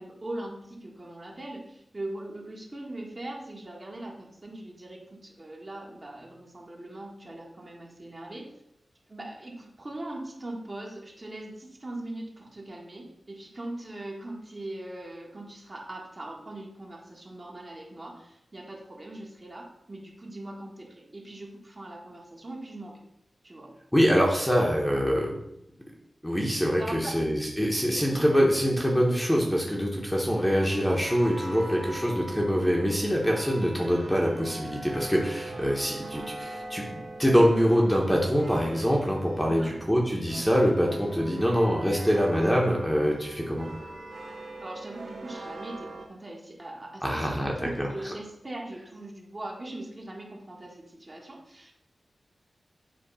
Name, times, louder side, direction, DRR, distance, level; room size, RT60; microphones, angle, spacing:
voice 1, 0.0-8.5 9.1-23.0 23.4-23.7 26.8-27.2 27.9-28.1 39.5-39.7 41.2-41.4 44.6-51.7, right 1 dB, 30° right, -2 dB, 1.7 m, -41 dB
voice 2, 23.9-25.3 26.2-36.8 37.2-43.7 47.0-47.9, equal, 5° left, -2 dB, 1.2 m, -24 dB
sound 1, 30.2-46.1, right 2 dB, 80° right, 1.4 m, -41 dB
8.5 x 3.1 x 5.6 m, 0.81 s
wide cardioid pair, 85°, 0 cm